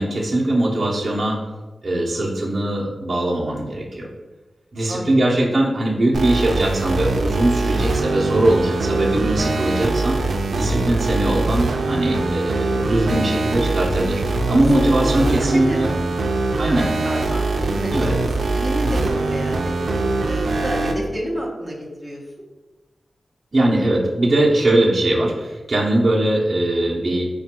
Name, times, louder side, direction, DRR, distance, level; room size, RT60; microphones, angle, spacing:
voice 1, 0.0-1.4 1.8-4.1 4.7-10.2 10.5-14.2 14.5-15.9 16.6-16.9 17.9-18.1 23.5-27.3, right 1 dB, 35° right, -5 dB, 0.7 m, -20 dB
sound 1, 6.1-21.0, right 3 dB, 75° right, 0.4 m, -22 dB
voice 2, 12.1-12.6 14.4-15.8 16.6-22.2, equal, ahead, -5 dB, 0.7 m, -30 dB
4.5 x 2.2 x 4.3 m, 1.2 s
wide cardioid pair, 135°, 0 cm